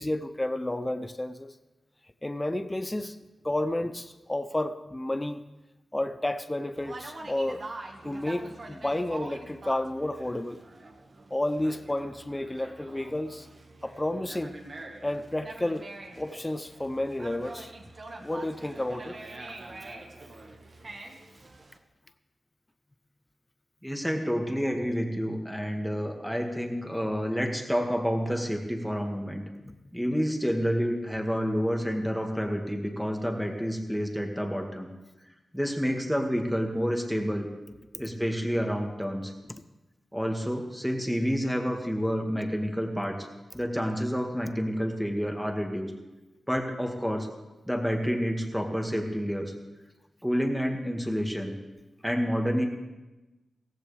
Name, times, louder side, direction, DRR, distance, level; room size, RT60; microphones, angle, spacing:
voice 1, 0.0-1.5 2.2-3.2 3.4-5.4 5.9-7.6 8.0-10.6 11.3-13.5 13.8-14.5 15.0-15.9 16.2-17.7 18.2-19.2, left 1 dB, 20° left, 11 dB, 0.6 m, -31 dB
Conversation, 6.7-21.8, right 2 dB, 50° right, 1.7 m, -45 dB
voice 2, 23.8-29.4 29.9-34.9 35.5-37.5 38.0-39.3 40.1-43.2 43.5-45.9 46.5-47.3 47.7-49.5 50.2-51.5 52.0-52.7, equal, ahead, 2 dB, 2.1 m, -29 dB
16.0 x 15.5 x 3.5 m, 1.1 s
cardioid pair, 65°, 0 cm